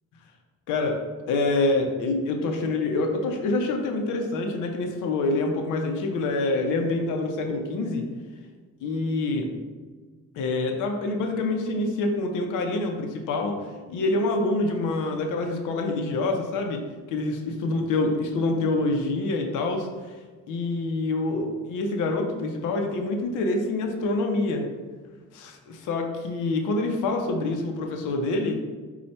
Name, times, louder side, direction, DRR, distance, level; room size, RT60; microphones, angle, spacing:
voice 1, 1.3-8.0 8.8-9.5 10.4-13.6 13.9-16.8 17.1-19.9 20.5-24.7 25.3-28.6, left 2 dB, 90° left, 3 dB, 0.6 m, -26 dB
4.1 x 2.3 x 4.3 m, 1.4 s
cardioid pair, 90°, 30 cm